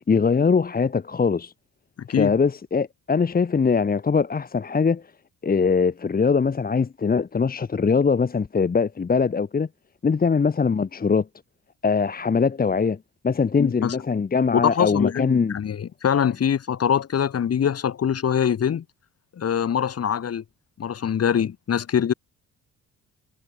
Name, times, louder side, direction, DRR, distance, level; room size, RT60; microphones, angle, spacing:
voice 1, 0.1-1.5 2.2-5.0 5.4-9.7 10.0-11.3 11.8-13.0 13.2-15.6, left 5 dB, 30° left, 1.5 m, -22 dB
voice 2, 2.0-2.3 13.6-14.0 14.5-18.8 19.4-20.4 20.8-22.1, left 8 dB, 55° left, 4.1 m, -23 dB
cardioid pair, 90°, 30 cm